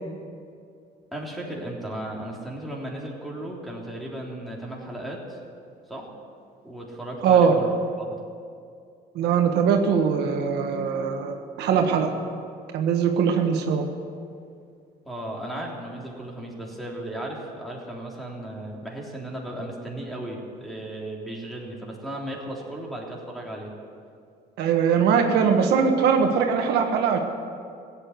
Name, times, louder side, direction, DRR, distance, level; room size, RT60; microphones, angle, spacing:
voice 1, 1.1-5.4 5.9-6.1 6.6-8.2 15.1-23.7, right 1 dB, ahead, -2 dB, 3.5 m, -35 dB
voice 2, 7.2-7.6 9.1-12.1 12.7-13.8 24.6-27.2, right 6 dB, 80° right, 4 dB, 1.5 m, -21 dB
16.0 x 8.8 x 9.5 m, 2.3 s
cardioid pair, 110°, 17 cm